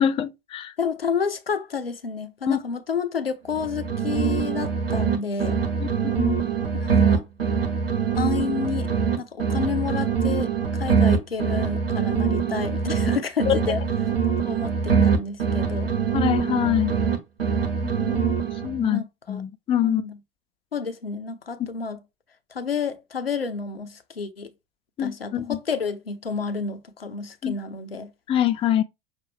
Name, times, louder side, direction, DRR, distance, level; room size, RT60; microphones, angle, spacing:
voice 1, 0.0-0.7 2.5-2.6 5.8-6.4 13.5-13.6 16.1-16.9 17.8-18.4 18.6-19.0 19.3-20.0 25.0-25.6 27.4-27.6 28.3-28.8, left 10 dB, 20° left, 0.5 m, -24 dB
voice 2, 0.8-5.6 6.8-7.3 8.2-8.9 9.2-13.8 14.4-15.9 18.8-19.4 19.8-20.1 20.7-22.0 22.5-24.5 25.0-28.1, left 5 dB, 85° left, 0.7 m, -30 dB
sound 1, 3.5-5.2 5.4-9.2 9.4-13.2 13.4-17.2 17.4-18.8, right 6 dB, 80° right, 1.1 m, -23 dB
5.9 x 2.4 x 3.5 m
figure-of-eight pair, 80°, 29 cm